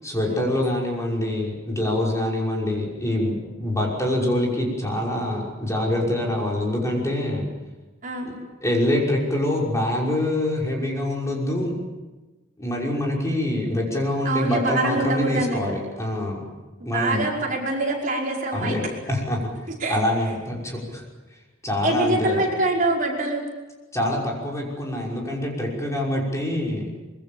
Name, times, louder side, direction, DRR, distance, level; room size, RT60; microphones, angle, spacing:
voice 1, 0.0-7.5 8.6-11.7 12.6-16.4 16.8-17.2 18.5-19.5 19.9-21.0 21.6-22.4 23.9-26.9, left 1 dB, 15° left, -2 dB, 5.8 m, -25 dB
voice 2, 14.2-15.6 16.9-18.8 19.8-20.0 21.8-23.5, right 2 dB, 45° right, -2 dB, 5.4 m, -24 dB
25.0 x 24.0 x 7.2 m, 1.2 s
head